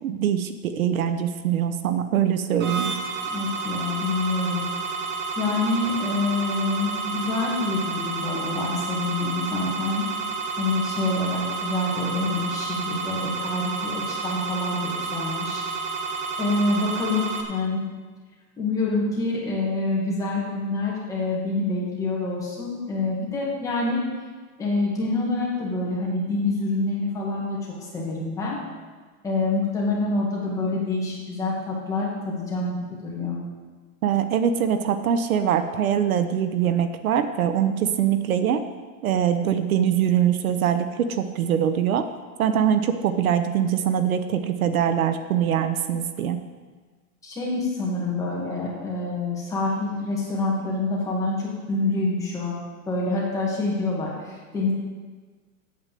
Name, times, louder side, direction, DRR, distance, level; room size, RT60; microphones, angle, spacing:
voice 1, 0.0-2.9 34.0-38.6 39.0-42.1 42.4-46.4, right 9 dB, 70° right, 9 dB, 1.0 m, -23 dB
sound 1, 2.6-17.4, right 4 dB, 35° right, 1.2 m, -30 dB
voice 2, 3.3-4.7 5.4-10.0 10.6-15.6 16.4-17.2 17.5-17.8 18.6-24.0 24.6-28.6 29.2-32.8 33.0-33.4 47.2-52.6 52.9-54.7, left 2 dB, 5° left, -5 dB, 1.8 m, -26 dB
8.7 x 7.9 x 7.6 m, 1.4 s
supercardioid pair, 180°, 43 cm